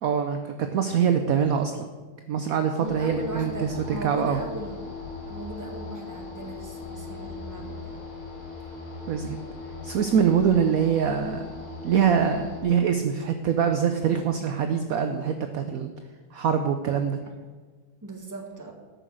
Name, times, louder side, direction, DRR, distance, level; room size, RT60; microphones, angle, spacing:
voice 1, 0.0-1.7 2.3-4.4 9.1-9.4 9.8-11.5 11.8-15.9 16.3-17.2, right 7 dB, 70° right, 7 dB, 0.8 m, -24 dB
sound 1, 2.8-12.6, left 3 dB, 50° left, 3.4 m, -39 dB
voice 2, 2.8-4.9 5.3-8.0 10.7-10.9 17.2-17.4 18.0-18.7, right 1 dB, 10° right, 1 dB, 1.3 m, -38 dB
13.0 x 6.0 x 6.4 m, 1.4 s
omnidirectional pair, 2.2 m